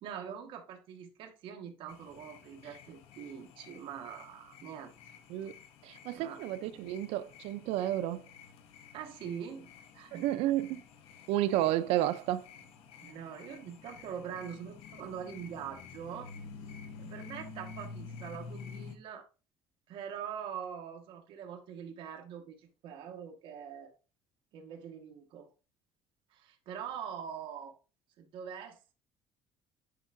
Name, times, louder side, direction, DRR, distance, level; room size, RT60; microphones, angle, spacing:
voice 1, 0.0-5.1 6.1-6.4 8.9-10.2 13.0-16.3 17.0-19.3 19.9-23.9 24.5-25.5 26.3-27.8 28.2-28.8, right 8 dB, 60° right, 1.4 m, -43 dB
sound 1, 1.9-19.0, left 5 dB, 70° left, 0.9 m, -50 dB
voice 2, 5.8-8.3 10.1-10.8 11.3-12.5, right 13 dB, 80° right, 0.5 m, -31 dB
10.0 x 4.6 x 2.6 m
cardioid pair, 170°, 10 cm